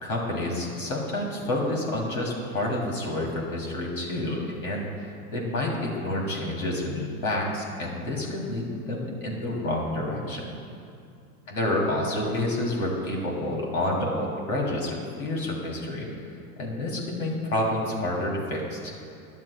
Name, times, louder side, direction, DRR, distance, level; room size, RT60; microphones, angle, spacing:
voice 1, 0.0-4.9 5.3-10.5 11.5-16.1 16.6-18.9, left 1 dB, 85° left, -2 dB, 2.9 m, -29 dB
22.0 x 11.0 x 2.2 m, 2.5 s
hypercardioid pair, 90°, 42 cm